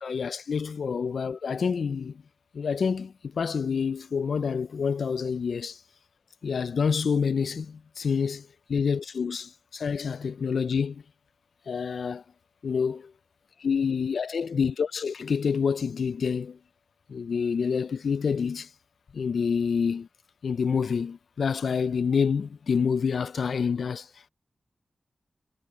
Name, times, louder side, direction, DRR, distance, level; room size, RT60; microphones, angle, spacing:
voice 1, 0.0-2.2 2.5-5.8 6.4-11.0 11.7-12.2 12.6-13.1 13.6-16.6 17.1-18.7 19.1-20.1 20.4-24.1, left 6 dB, 90° left, 0.3 m, -27 dB
wide cardioid pair, 85°, 0 cm